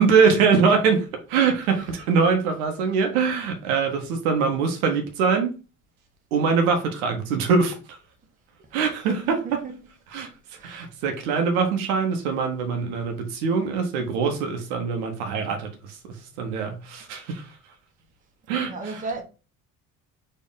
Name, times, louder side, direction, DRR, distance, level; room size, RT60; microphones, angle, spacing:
voice 1, 0.0-5.6 6.3-8.0 8.7-9.6 10.1-17.5 18.5-19.1, right 5 dB, 65° right, 1.0 m, -23 dB
voice 2, 8.7-9.7 10.5-10.9 18.6-19.2, right 4 dB, 15° right, 1.1 m, -35 dB
4.3 x 2.9 x 3.8 m
figure-of-eight pair, 55°, 47 cm